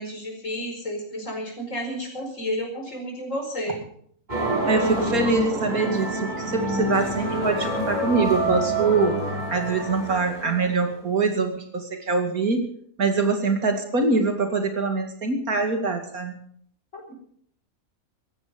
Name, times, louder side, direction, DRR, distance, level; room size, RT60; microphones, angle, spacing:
voice 1, 0.0-3.8 16.9-17.1, equal, 60° left, 2 dB, 5.3 m, -31 dB
sound 1, 4.3-10.8, right 1 dB, 30° right, 5.5 m, -27 dB
voice 2, 4.7-9.2 9.5-12.6 13.0-16.4, right 3 dB, 80° right, 5 dB, 2.9 m, -24 dB
17.0 x 15.0 x 5.3 m, 0.62 s
omnidirectional pair, 1.5 m